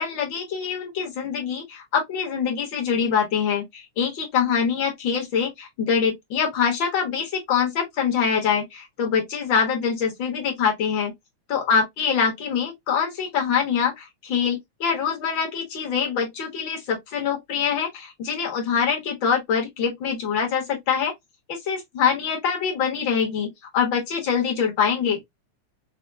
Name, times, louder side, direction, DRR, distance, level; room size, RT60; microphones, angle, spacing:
voice 1, 0.0-11.1 11.5-21.1 21.5-25.2, left 6 dB, 60° left, 1.3 m, -24 dB
4.9 x 2.1 x 2.2 m
omnidirectional pair, 3.3 m